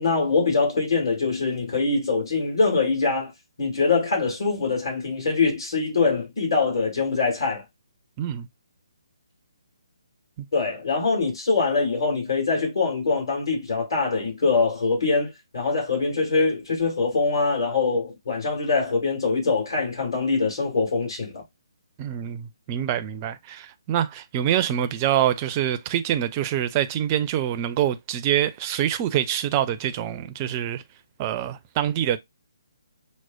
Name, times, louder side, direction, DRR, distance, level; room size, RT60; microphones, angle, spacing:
voice 1, 0.0-3.3 3.6-7.6 10.5-21.4, left 4 dB, 60° left, 2.1 m, -23 dB
voice 2, 8.2-8.5 22.0-30.8 31.2-32.2, right 11 dB, 25° right, 0.4 m, -25 dB
6.1 x 2.1 x 2.2 m
figure-of-eight pair, 140°, 3 cm